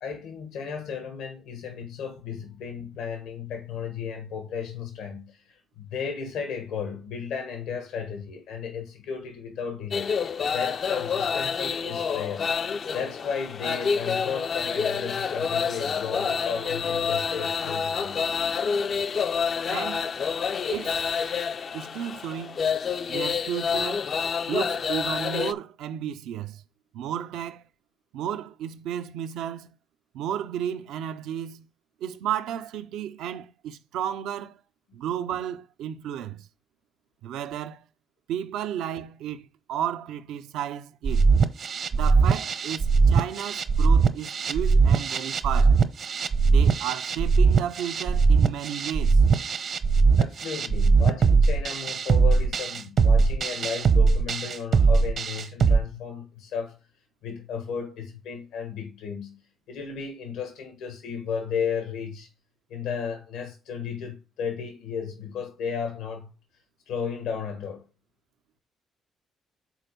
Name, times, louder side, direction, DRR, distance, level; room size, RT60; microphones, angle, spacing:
voice 1, 0.0-10.2 10.5-12.5 12.9-18.3 50.2-56.8 57.2-59.4 59.7-62.3 62.7-66.3 66.9-67.8, left 6 dB, 90° left, 1.6 m, -34 dB
sound 1, 9.9-25.5, left 6 dB, 50° left, 0.4 m, -28 dB
voice 2, 19.7-20.1 20.7-21.3 21.7-22.6 23.1-24.0 24.5-26.6 26.9-27.7 28.1-29.7 30.1-31.7 32.0-34.6 34.9-36.5 37.2-37.8 38.3-41.3 41.9-45.8 46.4-49.2, right 10 dB, 90° right, 0.6 m, -33 dB
sound 2, 41.0-55.8, right 4 dB, 55° right, 0.8 m, -20 dB
6.3 x 4.1 x 5.2 m
cardioid pair, 90°, 0 cm